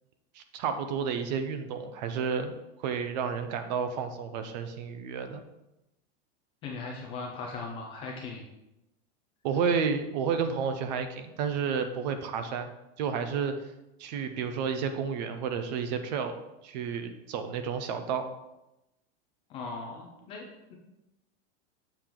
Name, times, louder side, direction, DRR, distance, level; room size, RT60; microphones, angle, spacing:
voice 1, 0.3-2.5 2.8-5.4 9.4-12.7 13.0-13.5 14.0-16.3 16.6-18.2, right 6 dB, 40° right, 9 dB, 0.5 m, -31 dB
voice 2, 6.6-8.4 19.5-20.7, left 4 dB, 15° left, 0 dB, 0.4 m, -39 dB
6.9 x 4.5 x 3.7 m, 0.91 s
supercardioid pair, 170°, 34 cm